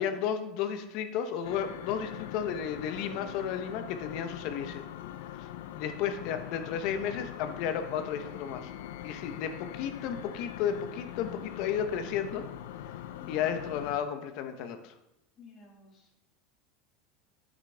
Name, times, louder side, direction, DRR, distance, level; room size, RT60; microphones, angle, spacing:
voice 1, 0.0-4.8 5.4-5.5 5.7-8.7 9.0-12.4 13.3-14.9, left 8 dB, 45° left, 8 dB, 0.9 m, -33 dB
sound 1, 1.4-14.0, left 12 dB, 75° left, 0.5 m, -42 dB
voice 2, 15.4-16.1, left 4 dB, 25° left, -2 dB, 2.0 m, -55 dB
8.9 x 6.2 x 3.4 m, 0.90 s
supercardioid pair, 170°, 0 cm